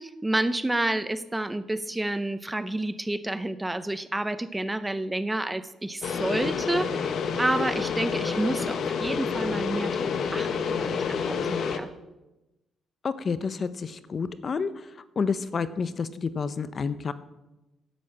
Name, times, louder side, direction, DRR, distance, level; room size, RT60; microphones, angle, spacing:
voice 1, 0.0-11.9, right 1 dB, 10° right, 13 dB, 0.6 m, -29 dB
sound 1, 6.0-11.8, left 6 dB, 65° left, 0.9 m, -28 dB
voice 2, 13.0-14.7 15.2-17.1, left 5 dB, 45° left, 14 dB, 0.6 m, -29 dB
10.5 x 6.3 x 7.3 m, 1.0 s
cardioid pair, 90°, 0 cm